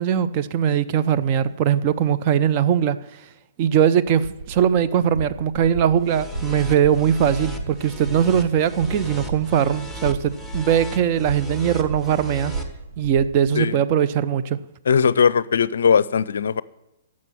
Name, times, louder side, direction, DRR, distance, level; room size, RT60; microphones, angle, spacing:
voice 1, 0.0-3.0 3.6-12.5 13.0-14.6, right 9 dB, 35° right, 0.7 m, -20 dB
sound 1, 4.1-13.5, right 3 dB, 70° right, 1.9 m, -35 dB
sound 2, 6.0-12.6, left 2 dB, 5° right, 1.4 m, -36 dB
voice 2, 14.9-16.6, left 6 dB, 60° left, 0.5 m, -19 dB
12.0 x 7.6 x 9.9 m
figure-of-eight pair, 115°, 0 cm